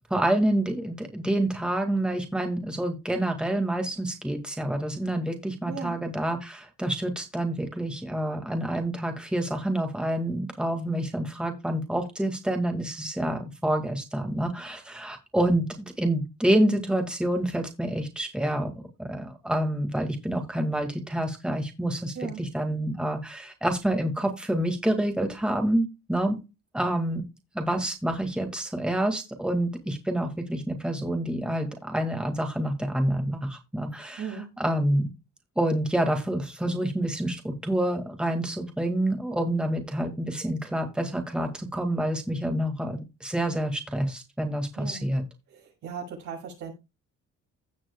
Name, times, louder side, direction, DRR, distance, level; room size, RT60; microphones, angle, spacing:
voice 1, 0.1-18.7 19.0-26.4 26.7-27.2 27.5-34.3 34.6-35.1 35.6-45.2, right 1 dB, 5° right, 4 dB, 2.0 m, -27 dB
voice 2, 5.7-6.0 22.1-22.4 34.0-34.5 44.8-45.1 45.5-46.7, right 6 dB, 80° right, 0 dB, 6.1 m, -37 dB
16.5 x 6.1 x 2.3 m, 0.26 s
cardioid pair, 90°, 30 cm